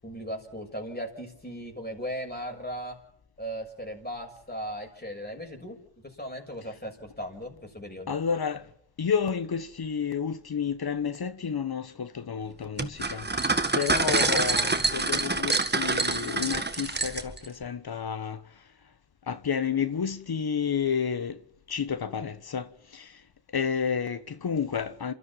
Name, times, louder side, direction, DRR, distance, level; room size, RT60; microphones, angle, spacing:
voice 1, 0.0-3.0 3.4-5.8 6.0-8.2, equal, 20° left, 6.6 m, -37 dB
voice 2, 8.1-8.7 9.0-18.5 19.3-21.4 21.7-23.2 23.5-25.1, left 7 dB, 60° left, 1.3 m, -30 dB
sound 1, 12.8-17.5, right 3 dB, 25° right, 1.8 m, -26 dB
28.5 x 13.0 x 7.6 m
cardioid pair, 45°, 43 cm